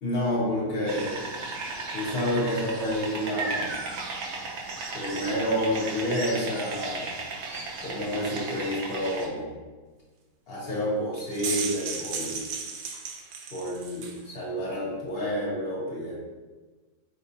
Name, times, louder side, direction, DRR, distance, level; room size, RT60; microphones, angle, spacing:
voice 1, 0.0-1.2 1.9-3.8 4.9-7.1 7.8-9.5 10.5-12.4 13.5-16.2, equal, 40° left, -6 dB, 1.6 m, -29 dB
sound 1, 0.9-9.3, right 3 dB, 60° right, 0.9 m, -35 dB
sound 2, 11.1-14.2, right 5 dB, 80° right, 1.1 m, -34 dB
5.3 x 3.7 x 2.7 m, 1.3 s
omnidirectional pair, 1.6 m